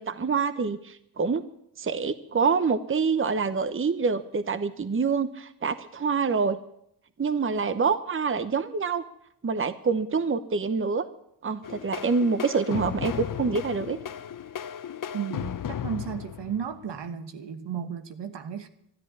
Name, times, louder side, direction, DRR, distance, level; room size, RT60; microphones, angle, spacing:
voice 1, 0.0-1.4 1.8-6.6 7.2-9.0 9.4-11.0 11.4-14.0, right 5 dB, 30° right, 1.0 m, -26 dB
sound 1, 11.6-17.1, left 9 dB, 45° left, 0.8 m, -35 dB
voice 2, 15.1-15.5 15.8-18.7, right 8 dB, 70° right, 1.4 m, -34 dB
13.0 x 11.0 x 9.6 m
cardioid pair, 65°, 43 cm